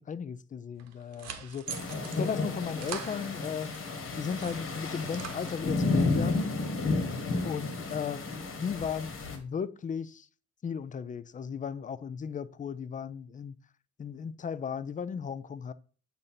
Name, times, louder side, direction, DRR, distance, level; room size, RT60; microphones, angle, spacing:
voice 1, 0.0-1.7 2.1-3.7 4.2-6.5 7.4-8.3 8.6-10.3 10.6-13.5 14.0-15.7, left 6 dB, 25° left, 0.4 m, -36 dB
sound 1, 0.8-3.8 4.2-5.9, right 8 dB, 60° right, 1.0 m, -44 dB
sound 2, 1.7-9.4, left 3 dB, 45° left, 1.5 m, -32 dB
7.9 x 2.7 x 5.7 m
cardioid pair, 90°, 30 cm